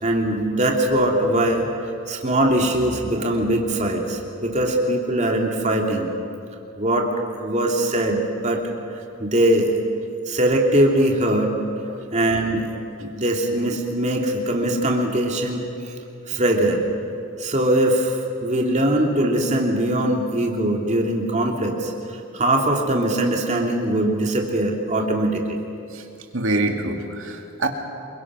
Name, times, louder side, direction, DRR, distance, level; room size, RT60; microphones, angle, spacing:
voice 1, 0.0-1.7 2.1-6.1 6.8-7.1 7.4-8.6 9.2-9.7 10.3-11.6 12.1-12.7 13.0-15.6 16.3-16.9 17.4-25.6, right 1 dB, 30° right, 1 dB, 2.7 m, -21 dB
voice 2, 26.3-27.7, right 2 dB, 65° right, 4 dB, 2.3 m, -25 dB
27.5 x 23.0 x 6.2 m, 2.6 s
head